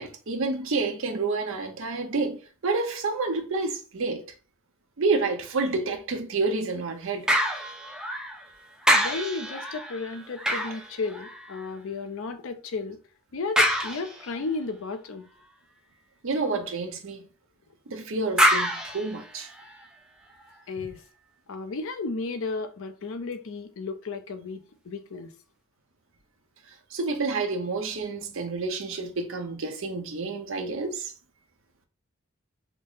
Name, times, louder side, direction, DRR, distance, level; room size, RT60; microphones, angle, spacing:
voice 1, 0.0-4.2 5.0-7.3 16.2-17.2 17.9-19.5 26.9-31.1, right 3 dB, 65° right, 0.7 m, -29 dB
sound 1, 7.3-8.5 8.8-11.7 13.6-14.5 18.4-19.8 20.4-20.5, equal, 5° right, 0.4 m, -26 dB
voice 2, 8.9-13.0 13.3-15.3 20.7-21.0 21.5-25.3, left 4 dB, 65° left, 0.5 m, -33 dB
3.4 x 2.0 x 3.9 m
head